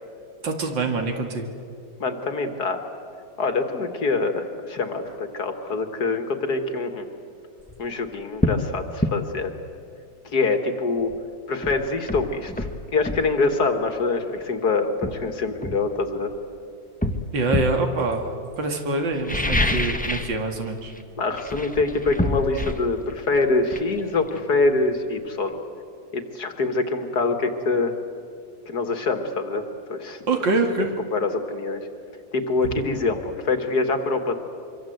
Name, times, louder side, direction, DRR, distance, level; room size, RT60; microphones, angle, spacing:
voice 1, 0.4-1.5 17.3-18.3 18.6-20.9 30.3-30.9, right 3 dB, 75° right, 4 dB, 2.8 m, -25 dB
voice 2, 2.0-2.8 3.4-7.1 7.8-9.5 10.2-11.1 11.5-16.3 21.2-25.6 26.1-27.9 28.7-29.6 29.9-30.9 31.1-31.9 32.3-34.3, left 3 dB, 55° left, 7 dB, 2.1 m, -25 dB
sound 1, 7.6-7.8 8.4-8.7 9.0-9.2 11.1-11.2 11.6-13.3 14.4-14.5 15.0-16.4 17.0-17.8 19.1-20.4 20.6-21.0 21.3-24.9 25.2-25.3, left 1 dB, 5° left, 0.8 m, -27 dB
25.0 x 24.5 x 7.9 m, 2.4 s
omnidirectional pair, 2.1 m